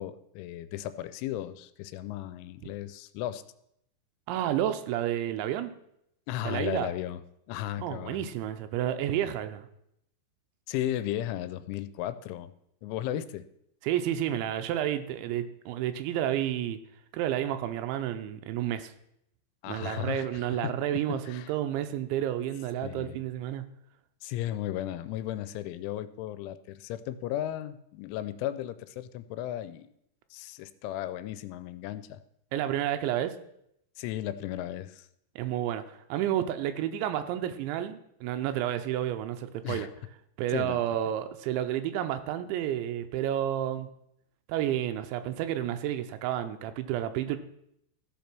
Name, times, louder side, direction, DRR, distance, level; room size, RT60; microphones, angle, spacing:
voice 1, 0.0-3.4 6.3-7.2 7.5-8.3 10.7-12.5 12.8-13.5 19.6-20.8 21.3-21.5 22.8-23.2 24.2-29.9 30.3-32.2 34.0-35.1 39.6-39.9 40.5-40.8, left 12 dB, 90° left, 13 dB, 3.1 m, -35 dB
voice 2, 4.3-5.7 6.4-6.9 7.8-9.7 13.8-16.8 17.1-18.9 19.7-23.6 32.5-33.4 35.4-39.9 40.4-43.9 44.5-47.4, right 11 dB, 80° right, 9 dB, 2.9 m, -30 dB
14.0 x 5.2 x 6.0 m, 0.77 s
omnidirectional pair, 5.4 m